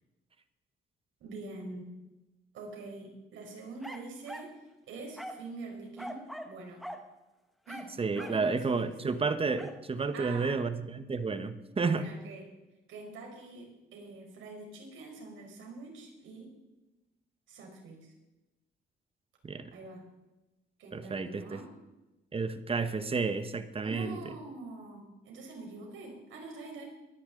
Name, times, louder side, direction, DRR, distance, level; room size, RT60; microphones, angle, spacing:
voice 1, 1.2-1.9 2.5-4.5 4.9-6.8 7.7-7.9 8.2-9.1 10.1-10.6 11.8-12.4 12.9-16.5 17.5-18.1 19.7-20.0 20.8-21.7 23.8-26.8, right 3 dB, 80° right, 1 dB, 4.8 m, -45 dB
sound 1, 3.8-4.6 5.2-5.5 6.0-6.6 6.8-7.1 7.7-8.5 9.6-9.8, equal, ahead, 1.5 m, -43 dB
voice 2, 8.0-12.1 19.4-19.7 20.9-21.6 22.3-24.2, right 4 dB, 30° right, 10 dB, 1.2 m, -31 dB
23.5 x 10.0 x 3.9 m, 1.0 s
cardioid pair, 90°, 20 cm